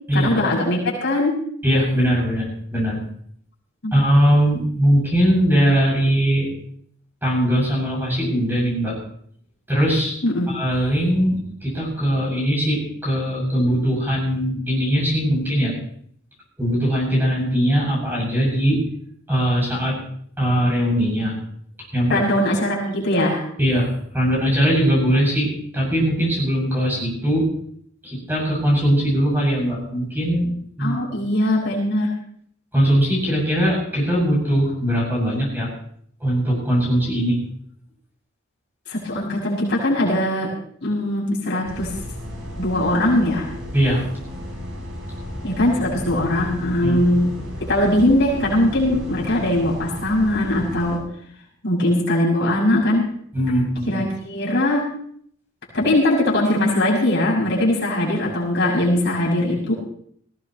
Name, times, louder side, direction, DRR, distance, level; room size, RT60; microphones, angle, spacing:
voice 1, 0.1-1.3 3.8-3.9 10.2-10.5 22.1-23.4 30.8-32.1 38.9-40.5 40.8-41.9 42.6-43.5 45.4-47.3 47.6-51.0 51.6-53.1 53.9-54.9 55.7-59.7, left 1 dB, 55° left, -4 dB, 6.1 m, -20 dB
voice 2, 1.6-3.0 3.9-6.5 7.2-8.9 9.7-10.1 10.5-15.7 16.6-18.8 19.3-19.9 20.4-21.4 21.9-22.2 23.6-23.9 24.1-27.5 28.0-30.5 30.8-31.0 32.7-35.7 36.2-37.4 43.7-44.0 46.8-47.0 53.3-54.0, equal, 10° right, -4 dB, 7.5 m, -20 dB
sound 1, 41.6-51.0, left 1 dB, 75° right, 7.0 m, -33 dB
19.5 x 17.0 x 3.2 m, 0.64 s
head